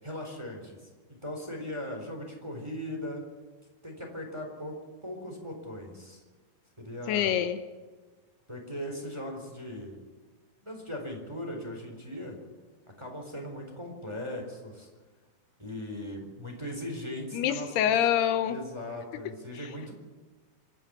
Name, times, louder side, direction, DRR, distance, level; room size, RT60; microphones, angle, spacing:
voice 1, 0.0-3.2 3.8-4.8 5.0-6.2 6.8-7.4 8.5-10.0 10.6-12.4 13.0-14.9 15.6-17.9 18.4-19.9, left 1 dB, 5° right, 1 dB, 3.6 m, -39 dB
voice 2, 7.1-7.6 17.3-18.6, left 10 dB, 85° left, 9 dB, 3.0 m, -25 dB
27.0 x 9.8 x 9.8 m, 1.3 s
omnidirectional pair, 4.6 m